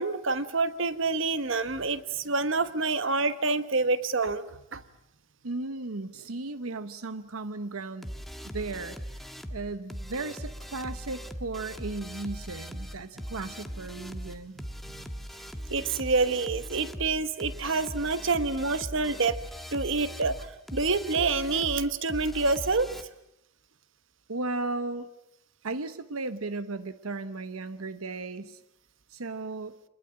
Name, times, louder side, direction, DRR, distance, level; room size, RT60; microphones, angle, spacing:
voice 1, 0.0-4.8 15.7-19.4 19.7-22.9, right 3 dB, 60° right, 12 dB, 1.3 m, -27 dB
voice 2, 5.4-8.1 8.4-9.0 9.5-14.6 24.3-25.1 25.6-28.6 29.1-29.8, right 3 dB, 85° right, 12 dB, 1.1 m, -35 dB
sound 1, 8.0-23.0, equal, ahead, 1.5 m, -40 dB
26.5 x 21.0 x 8.9 m, 0.81 s
head